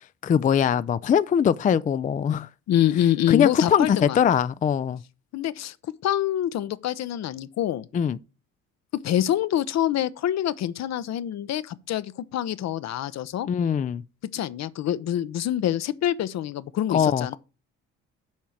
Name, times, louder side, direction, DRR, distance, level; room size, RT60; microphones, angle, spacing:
voice 1, 0.2-2.5 3.3-5.0 7.9-8.2 13.5-14.0 16.9-17.3, left 8 dB, 25° left, 0.4 m, -22 dB
voice 2, 2.7-4.2 5.3-5.7 6.0-7.8 9.0-13.5 14.3-17.4, left 11 dB, 60° left, 0.7 m, -26 dB
7.3 x 4.6 x 6.3 m
supercardioid pair, 70°, 30 cm